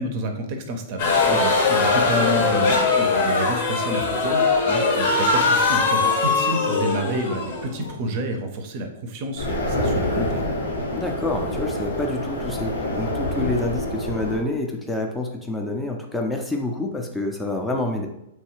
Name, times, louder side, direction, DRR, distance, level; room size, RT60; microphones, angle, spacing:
voice 1, 0.0-10.6, right 1 dB, 45° right, 5 dB, 0.5 m, -29 dB
sound 1, 1.0-8.1, left 4 dB, 60° left, 0.7 m, -21 dB
sound 2, 9.4-14.4, left 1 dB, 90° left, 0.8 m, -26 dB
voice 2, 10.9-18.1, left 2 dB, 10° left, 1 dB, 0.4 m, -28 dB
3.1 x 2.2 x 3.0 m, 0.87 s
hypercardioid pair, 120°, 0 cm